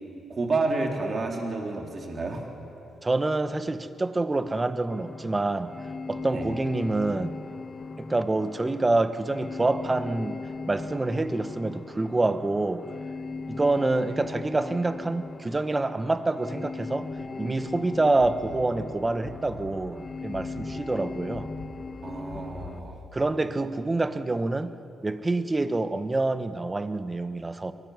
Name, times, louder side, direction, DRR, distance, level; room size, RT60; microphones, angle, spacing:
voice 1, 0.3-2.5 6.3-6.5 22.0-23.0, right 3 dB, 40° right, 1 dB, 3.7 m, -30 dB
voice 2, 3.0-5.7 6.1-7.4 8.0-10.4 10.7-12.9 13.5-17.1 17.4-21.5 23.1-24.8 25.0-27.7, right 2 dB, 25° right, 11 dB, 1.2 m, -27 dB
sound 1, 4.9-22.8, left 3 dB, 35° left, 1.2 m, -38 dB
sound 2, 18.2-23.2, left 5 dB, 80° left, 4.0 m, -45 dB
23.0 x 18.5 x 9.7 m, 2.8 s
cardioid pair, 70°, 0 cm